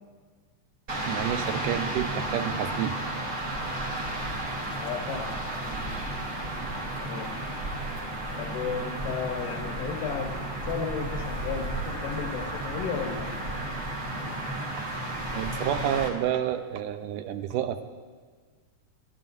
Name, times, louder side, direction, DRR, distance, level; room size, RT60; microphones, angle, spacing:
sound 1, 0.9-16.1, right 1 dB, 40° right, 1.2 m, -33 dB
voice 1, 1.1-3.0 14.8-14.9 15.3-17.8, right 10 dB, 80° right, 9 dB, 2.1 m, -29 dB
voice 2, 4.8-5.7 7.0-7.3 8.4-13.3, left 6 dB, 80° left, 1 dB, 2.6 m, -34 dB
22.5 x 12.0 x 2.6 m, 1.5 s
omnidirectional pair, 3.8 m